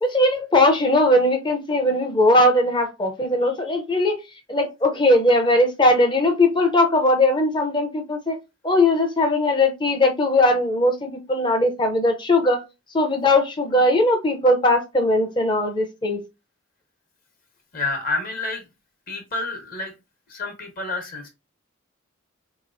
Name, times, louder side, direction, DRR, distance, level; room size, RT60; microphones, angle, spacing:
voice 1, 0.0-4.2 4.5-8.4 8.6-12.6 12.9-16.2, left 1 dB, 20° left, 0.6 m, -19 dB
voice 2, 17.7-18.6 19.1-19.9 20.3-21.3, left 2 dB, 45° left, 1.0 m, -29 dB
3.7 x 3.0 x 2.5 m
head